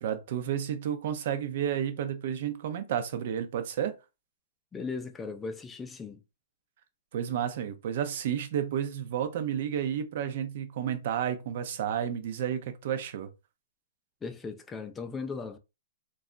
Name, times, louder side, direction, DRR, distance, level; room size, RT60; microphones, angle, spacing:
voice 1, 0.0-3.9 7.1-13.3, right 9 dB, 55° right, 0.5 m, -31 dB
voice 2, 4.7-6.2 14.2-15.6, left 4 dB, 10° left, 0.4 m, -37 dB
2.3 x 2.0 x 3.7 m
hypercardioid pair, 140°, 0 cm